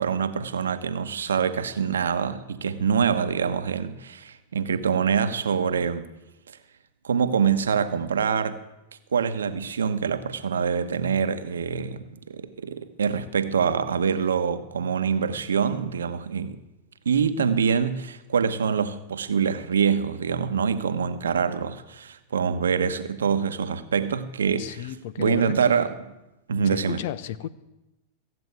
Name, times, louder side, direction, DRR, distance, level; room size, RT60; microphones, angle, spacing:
voice 1, 0.0-6.1 7.0-8.6 9.1-16.6 17.0-24.9 25.2-25.9 26.5-27.0, right 6 dB, 90° right, 1.0 m, -25 dB
voice 2, 24.6-25.9 26.6-27.5, left 11 dB, 65° left, 0.8 m, -34 dB
15.5 x 7.9 x 9.4 m
hypercardioid pair, 110°, 0 cm